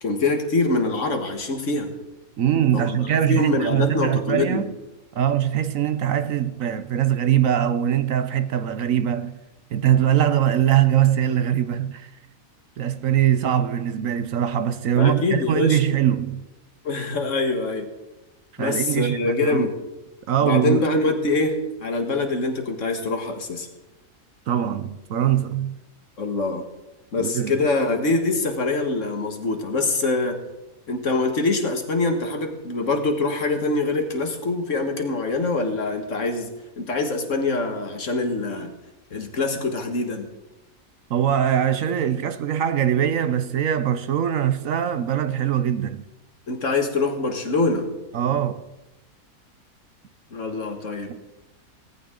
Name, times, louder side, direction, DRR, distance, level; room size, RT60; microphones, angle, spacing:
voice 1, 0.0-1.9 2.7-3.0 3.3-4.6 15.0-15.8 16.8-17.9 18.6-19.7 20.4-23.7 26.2-26.7 27.1-30.4 30.9-36.5 36.8-38.7 39.1-40.3 46.5-47.9 50.3-51.1, left 3 dB, 55° left, 1.9 m, -24 dB
voice 2, 2.4-4.7 5.1-9.4 9.7-12.1 12.8-16.5 18.6-19.7 20.3-20.8 24.5-25.8 27.2-27.6 41.1-46.0 48.1-48.6, right 10 dB, 65° right, 1.0 m, -22 dB
18.5 x 14.0 x 3.8 m
omnidirectional pair, 1.6 m